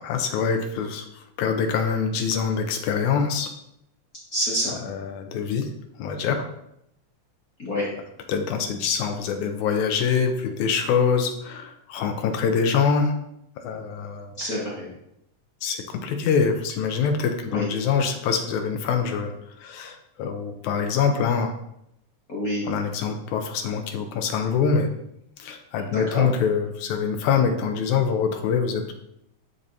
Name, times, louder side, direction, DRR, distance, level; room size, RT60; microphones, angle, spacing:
voice 1, 0.0-1.1 1.4-3.5 4.9-5.7 6.0-6.4 8.3-13.1 13.6-14.3 15.6-19.3 19.6-21.5 22.7-24.9 25.4-28.9, left 6 dB, 85° left, 5 dB, 2.1 m, -24 dB
voice 2, 4.3-4.8 7.6-7.9 14.4-14.9 17.5-17.7 22.3-22.7 25.9-26.3, equal, 40° left, -6 dB, 1.5 m, -27 dB
12.0 x 4.1 x 2.7 m, 0.77 s
omnidirectional pair, 3.4 m